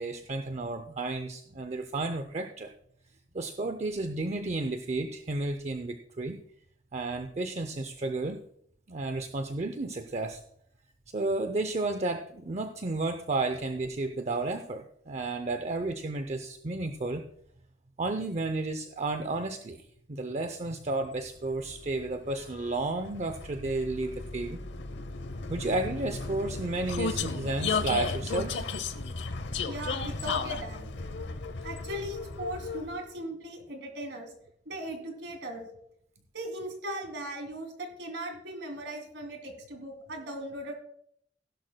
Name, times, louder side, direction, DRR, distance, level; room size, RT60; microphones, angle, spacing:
voice 1, 0.0-2.7 3.3-6.4 6.9-8.4 8.9-10.4 11.1-17.3 18.0-24.6 25.5-28.6, right 2 dB, 40° right, 7 dB, 0.6 m, -32 dB
Vehicle, 21.2-33.1, left 4 dB, 75° left, 0.8 m, -35 dB
voice 2, 29.7-30.9 31.6-34.3 34.6-35.7 36.3-40.7, right 1 dB, 75° right, 3 dB, 2.8 m, -38 dB
16.0 x 11.5 x 2.2 m, 0.69 s
head